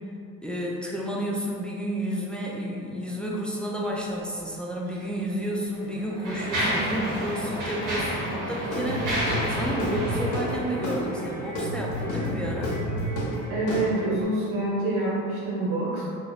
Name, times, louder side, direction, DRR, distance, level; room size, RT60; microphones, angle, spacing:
voice 1, 0.4-12.7, equal, 5° left, -3 dB, 0.3 m, -31 dB
Mechanisms, 4.9-5.0 5.7-11.5, equal, 55° right, 1.3 m, -30 dB
Guitar / Drum, 8.7-14.2, equal, 50° left, 0.8 m, -30 dB
voice 2, 13.5-16.0, right 2 dB, 80° right, -7 dB, 1.4 m, -26 dB
2.5 x 2.4 x 3.2 m, 2.3 s
supercardioid pair, 80°, 38 cm